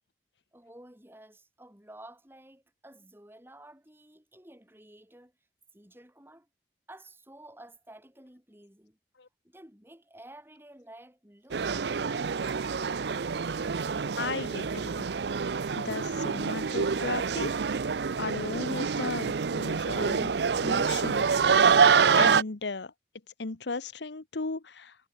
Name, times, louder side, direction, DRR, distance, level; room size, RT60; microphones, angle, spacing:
voice 1, 0.5-5.3 5.7-6.5 6.9-9.0 9.4-12.3, right 1 dB, 15° right, 4.7 m, -52 dB
sound 1, 11.5-22.4, right 5 dB, 75° right, 0.6 m, -26 dB
voice 2, 14.2-15.1 15.8-17.5 18.2-20.3 20.6-21.7 22.1-22.9 23.4-25.0, left 3 dB, 90° left, 1.1 m, -35 dB
head